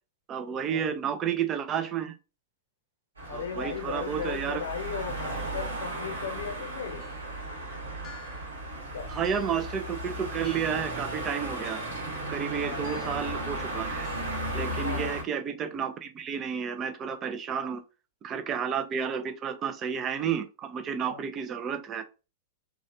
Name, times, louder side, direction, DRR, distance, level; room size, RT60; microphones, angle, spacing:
voice 1, 0.3-2.2 3.3-4.6 9.1-11.8 12.3-14.1 14.5-17.8 18.2-22.0, right 7 dB, 30° right, 0.5 m, -31 dB
sound 1, 3.2-15.2, right 1 dB, 80° right, 1.1 m, -35 dB
voice 2, 3.3-7.0 8.9-9.2 12.6-12.9 14.8-15.2 21.1-21.2, left 7 dB, 70° left, 0.7 m, -37 dB
sound 2, 7.0-7.3 8.0-8.6 9.2-9.6 10.4-10.9 11.6-12.1 12.8-13.3 14.0-14.5, left 6 dB, 30° left, 0.5 m, -51 dB
3.1 x 2.3 x 2.7 m
figure-of-eight pair, 100°, 0 cm